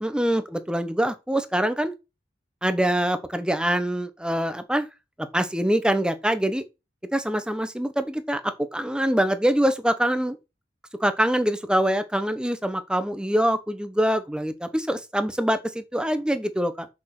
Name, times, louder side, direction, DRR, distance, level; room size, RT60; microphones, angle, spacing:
voice 1, 0.0-1.9 2.6-4.9 5.2-6.6 7.1-10.4 11.0-16.9, equal, 5° right, 1.2 m, -24 dB
6.6 x 6.4 x 6.1 m
head